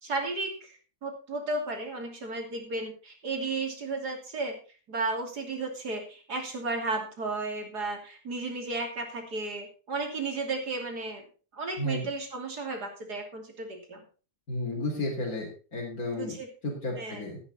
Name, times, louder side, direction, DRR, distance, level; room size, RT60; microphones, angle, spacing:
voice 1, 0.0-4.5 4.9-11.2 11.5-14.0 16.1-16.5 17.0-17.2, right 3 dB, 90° right, 3 dB, 3.5 m, -34 dB
voice 2, 14.5-16.3 16.6-17.4, left 1 dB, 65° left, -3 dB, 4.1 m, -32 dB
13.5 x 9.7 x 4.3 m, 0.36 s
omnidirectional pair, 1.7 m